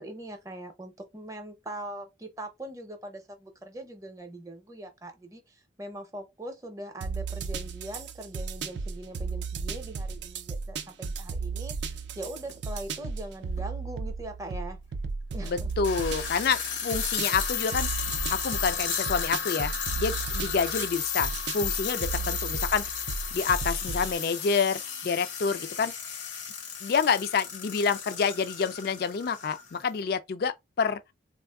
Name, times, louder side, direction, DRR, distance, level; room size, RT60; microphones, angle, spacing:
voice 1, 0.0-14.8 15.3-15.7 22.2-22.4, right 1 dB, 15° right, 0.6 m, -41 dB
sound 1, 7.0-24.2, right 4 dB, 65° right, 0.4 m, -35 dB
sound 2, 12.5-12.6 13.6-13.7 15.7-29.8, left 8 dB, 80° left, 0.8 m, -34 dB
voice 2, 15.4-17.9 18.3-23.0 23.3-25.9 26.8-31.0, left 5 dB, 55° left, 0.3 m, -28 dB
3.4 x 2.4 x 2.2 m
head